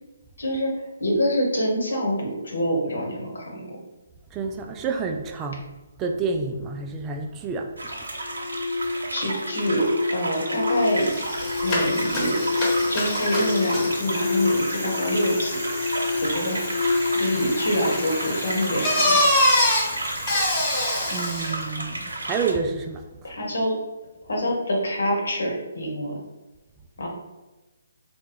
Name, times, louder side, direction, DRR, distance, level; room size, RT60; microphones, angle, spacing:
voice 1, 0.4-3.8 9.1-11.1 11.6-12.4 12.9-15.6 16.2-16.6 17.1-19.2 23.2-23.7 24.2-26.2 27.0-27.1, equal, 75° left, -1 dB, 1.2 m, -26 dB
voice 2, 4.3-5.7 6.0-7.7 8.8-8.9 21.1-23.4, right 4 dB, 20° right, 4 dB, 0.3 m, -29 dB
sound 1, 7.8-22.5, right 2 dB, 80° right, 0.8 m, -32 dB
sound 2, 8.2-19.2, left 3 dB, 45° left, 0.6 m, -28 dB
Bicycle, 10.5-10.6 10.8-21.6, left 1 dB, 25° left, 1.1 m, -26 dB
3.8 x 2.2 x 3.3 m, 1.1 s
figure-of-eight pair, 140°, 0 cm